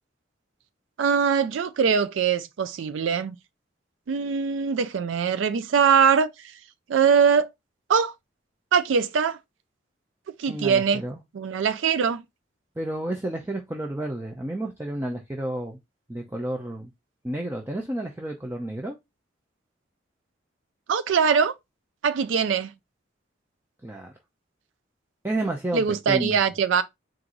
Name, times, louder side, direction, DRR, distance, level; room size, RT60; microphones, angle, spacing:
voice 1, 1.0-3.3 4.1-6.3 6.9-7.5 7.9-8.1 8.7-9.4 10.4-11.0 11.3-12.2 20.9-21.5 22.0-22.7 25.7-26.8, right 6 dB, 85° right, 0.4 m, -22 dB
voice 2, 10.5-11.2 12.8-15.8 16.1-16.9 17.2-19.0 23.8-24.1 25.2-26.5, right 1 dB, 10° right, 0.5 m, -31 dB
4.5 x 2.5 x 3.8 m
head